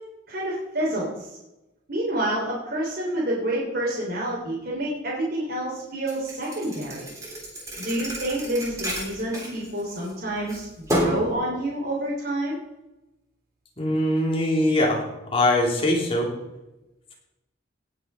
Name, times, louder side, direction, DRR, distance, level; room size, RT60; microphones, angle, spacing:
voice 1, 0.3-1.3 1.9-7.1 7.8-12.5, right 1 dB, 55° right, -5 dB, 3.4 m, -28 dB
Thump thud, 6.1-10.1 10.5-11.3, equal, 15° right, 3.5 m, -30 dB
voice 2, 13.8-15.0 15.3-16.3, left 1 dB, 30° left, -1 dB, 3.2 m, -22 dB
18.0 x 6.8 x 5.6 m, 0.97 s
head